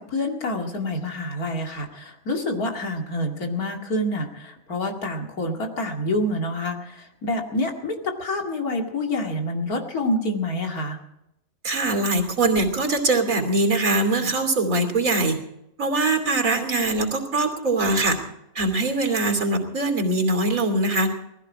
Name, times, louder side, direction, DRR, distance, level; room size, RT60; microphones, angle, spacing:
voice 1, 0.0-11.0, left 1 dB, 80° left, 2 dB, 2.8 m, -27 dB
voice 2, 11.6-15.4 15.8-18.2 18.5-21.1, right 2 dB, 65° right, 5 dB, 3.3 m, -22 dB
19.5 x 15.0 x 4.9 m, 0.84 s
omnidirectional pair, 1.5 m